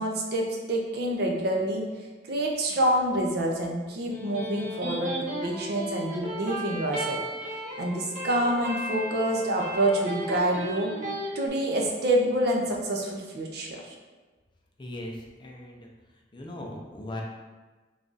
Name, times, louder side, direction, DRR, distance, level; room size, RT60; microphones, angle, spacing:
voice 1, 0.0-1.9 2.2-7.2 7.8-10.9 11.3-13.9, right 1 dB, 60° right, 0 dB, 0.6 m, -27 dB
Electric guitar, 3.9-11.3, equal, 45° right, 0.9 m, -35 dB
voice 2, 14.8-15.9 16.3-17.2, left 1 dB, 25° left, -1 dB, 0.5 m, -39 dB
3.4 x 2.4 x 3.9 m, 1.3 s
head